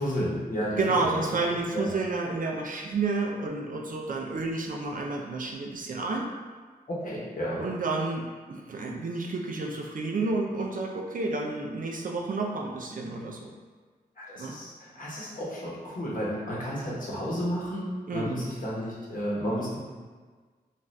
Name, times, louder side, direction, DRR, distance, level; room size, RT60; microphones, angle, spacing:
voice 1, 0.0-1.1 1.7-1.9 6.9-7.6 14.2-19.8, equal, 55° left, -6 dB, 1.0 m, -32 dB
voice 2, 0.8-6.3 7.6-13.5 14.4-14.6 18.1-18.4, right 3 dB, 55° right, 1 dB, 0.4 m, -30 dB
2.6 x 2.4 x 3.2 m, 1.4 s
cardioid pair, 65°, 17 cm